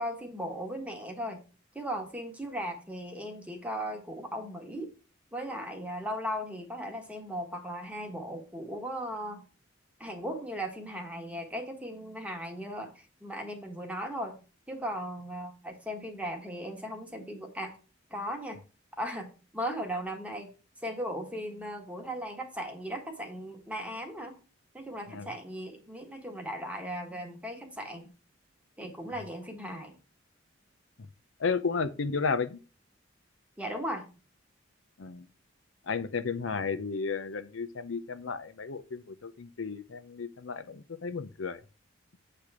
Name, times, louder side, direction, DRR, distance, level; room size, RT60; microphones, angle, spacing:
voice 1, 0.0-1.4 1.7-4.9 5.3-9.4 10.0-17.7 18.1-18.6 19.0-20.5 20.8-24.4 24.7-28.1 28.8-30.0 33.6-34.1, equal, 5° right, 1.4 m, -37 dB
voice 2, 31.4-32.6 35.0-35.3 35.9-41.6, left 5 dB, 80° left, 0.6 m, -33 dB
8.3 x 3.4 x 5.9 m
head